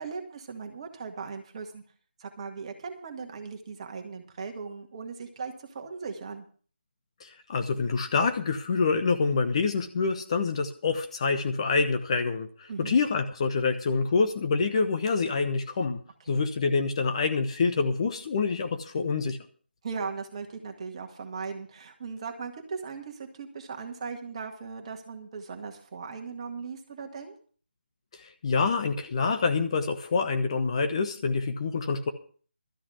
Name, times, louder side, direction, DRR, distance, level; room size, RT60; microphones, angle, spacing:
voice 1, 0.0-1.8 2.2-6.5 12.7-13.0 16.3-16.4 19.8-27.4, right 5 dB, 30° right, 4 dB, 1.9 m, -38 dB
voice 2, 7.2-16.0 16.3-19.4 28.1-32.1, left 4 dB, 30° left, 6 dB, 1.1 m, -26 dB
13.0 x 6.2 x 9.4 m, 0.43 s
figure-of-eight pair, 155°, 6 cm